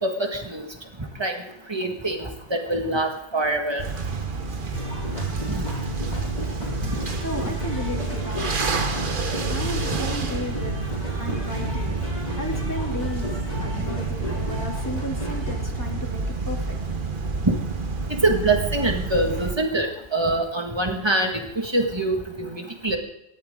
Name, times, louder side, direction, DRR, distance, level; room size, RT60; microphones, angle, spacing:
voice 1, 0.0-0.7 1.2-1.4 1.7-3.8 5.5-5.6 18.1-23.0, right 2 dB, 25° right, 2 dB, 1.9 m, -24 dB
sound 1, 3.8-19.5, right 4 dB, 50° right, 1.3 m, -29 dB
sound 2, 4.7-15.6, left 1 dB, 40° left, 7.9 m, -33 dB
voice 2, 7.2-8.8 9.4-12.1 12.4-16.8, left 1 dB, 15° left, 0 dB, 2.7 m, -34 dB
27.0 x 13.5 x 3.8 m, 0.84 s
omnidirectional pair, 1.1 m